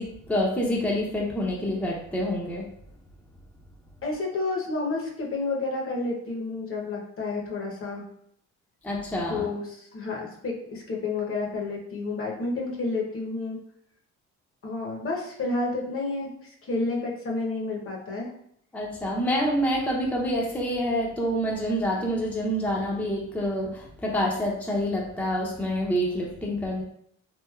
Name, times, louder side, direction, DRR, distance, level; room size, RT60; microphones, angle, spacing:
voice 1, 0.0-2.6 8.8-9.5 18.7-26.8, equal, 5° left, -2 dB, 0.5 m, -27 dB
voice 2, 4.0-8.1 9.3-13.6 14.6-18.3, left 3 dB, 45° left, -1 dB, 0.8 m, -30 dB
3.1 x 2.6 x 2.3 m, 0.69 s
cardioid pair, 90°, 30 cm